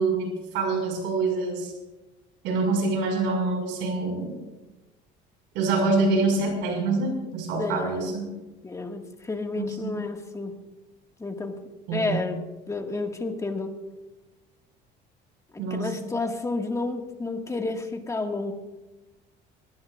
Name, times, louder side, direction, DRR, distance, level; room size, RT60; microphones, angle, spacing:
voice 1, 0.0-1.7 2.4-4.4 5.5-8.3 9.6-9.9 11.9-12.2 15.6-16.1, right 3 dB, 90° right, 1 dB, 5.9 m, -26 dB
voice 2, 7.6-8.2 8.6-10.6 11.2-11.6 11.9-13.8 15.5-18.5, left 3 dB, 15° left, 3 dB, 1.9 m, -31 dB
22.0 x 19.0 x 2.5 m, 1.1 s
cardioid pair, 115°, 19 cm